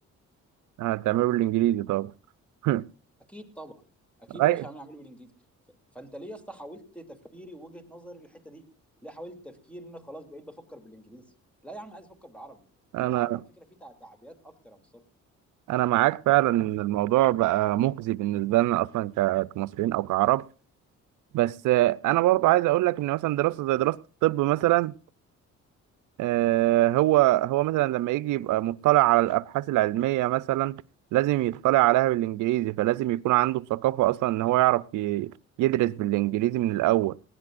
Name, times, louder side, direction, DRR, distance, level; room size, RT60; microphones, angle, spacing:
voice 1, 0.8-2.1 2.6-2.9 4.4-4.6 12.9-13.4 15.7-20.4 21.3-25.0 26.2-30.8 31.1-35.3 35.6-37.1, right 16 dB, 80° right, 0.6 m, -23 dB
voice 2, 3.3-3.7 4.2-5.3 5.9-8.6 9.0-11.3 11.6-12.7 13.1-15.0, right 1 dB, 5° left, 2.8 m, -44 dB
20.5 x 16.0 x 2.5 m
cardioid pair, 90°, 30 cm